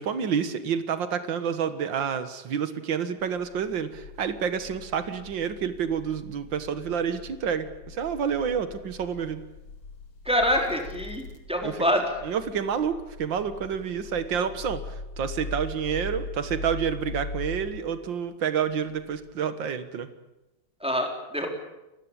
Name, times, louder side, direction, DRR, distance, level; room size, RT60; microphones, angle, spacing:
voice 1, 0.0-9.4 11.6-11.8 12.2-14.8 15.2-20.1, right 7 dB, 80° right, 11 dB, 2.2 m, -29 dB
She sought solace by breathing, 3.3-17.8 18.7-19.3, left 3 dB, 80° left, 3.0 m, -41 dB
voice 2, 10.3-12.1 20.8-21.5, equal, 5° right, 2 dB, 3.8 m, -26 dB
30.0 x 15.5 x 8.8 m, 0.96 s
omnidirectional pair, 2.0 m